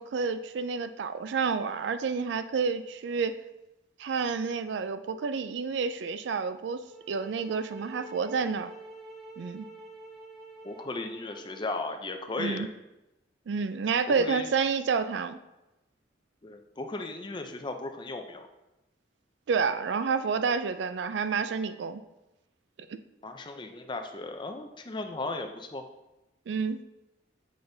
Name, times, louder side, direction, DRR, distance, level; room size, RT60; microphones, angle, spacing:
voice 1, 0.0-3.4 4.0-8.7 9.4-9.7 12.4-12.7 13.5-15.4 19.5-22.0 22.9-23.0 26.5-26.8, right 5 dB, 75° right, 11 dB, 0.4 m, -29 dB
sound 1, 6.9-11.8, right 2 dB, ahead, 0.9 m, -47 dB
voice 2, 10.6-12.7 14.1-14.5 16.4-18.5 23.2-25.8, left 2 dB, 25° left, 6 dB, 0.5 m, -36 dB
7.8 x 5.1 x 2.7 m, 0.97 s
head